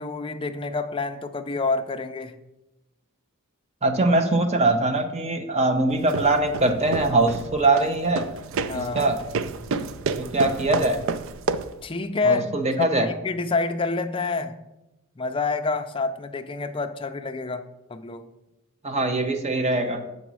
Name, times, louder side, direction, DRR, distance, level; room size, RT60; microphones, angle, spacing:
voice 1, 0.0-2.4 8.7-9.1 11.8-14.6 15.2-18.3, left 3 dB, 25° left, 7 dB, 0.4 m, -28 dB
voice 2, 3.8-8.3 8.7-9.2 10.2-11.0 12.2-13.1 18.8-20.0, right 2 dB, 30° right, 6 dB, 0.7 m, -22 dB
sound 1, 5.9-11.8, right 4 dB, 60° right, 0.4 m, -30 dB
6.9 x 4.1 x 6.1 m, 0.93 s
head